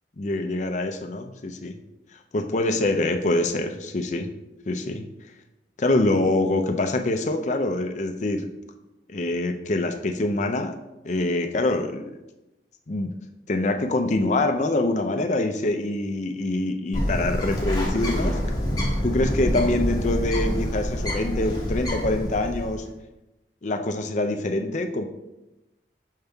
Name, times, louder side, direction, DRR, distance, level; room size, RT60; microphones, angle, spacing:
voice 1, 0.2-1.8 2.3-4.3 4.7-5.1 5.8-8.5 9.1-10.7 11.0-12.1 12.9-13.1 13.5-18.4 19.0-22.8 23.6-25.1, left 2 dB, 40° left, 6 dB, 0.5 m, -25 dB
Bird, 16.9-22.9, equal, 20° left, 1.1 m, -26 dB
5.5 x 5.2 x 3.5 m, 0.96 s
head